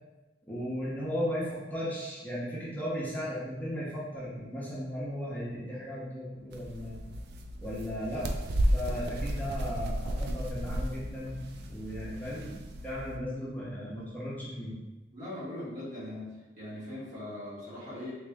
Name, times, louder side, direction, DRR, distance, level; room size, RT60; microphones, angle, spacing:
voice 1, 0.5-7.0 7.6-8.3 8.7-11.4 11.6-12.5 12.8-14.8, equal, 10° left, -8 dB, 0.7 m, -36 dB
sound 1, 6.5-13.2, equal, 60° right, 0.4 m, -33 dB
voice 2, 15.1-16.2 16.6-18.2, left 1 dB, 40° right, -8 dB, 1.3 m, -40 dB
3.4 x 2.7 x 3.4 m, 1.1 s
head